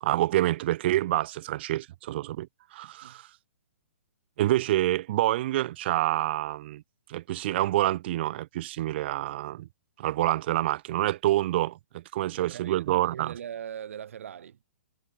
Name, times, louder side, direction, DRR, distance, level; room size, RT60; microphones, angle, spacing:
voice 1, 0.0-3.3 4.4-6.8 7.1-9.7 10.0-13.3, right 15 dB, 50° right, 0.8 m, -27 dB
voice 2, 12.3-14.6, right 9 dB, 65° right, 7.0 m, -40 dB
hypercardioid pair, 140°, 8 cm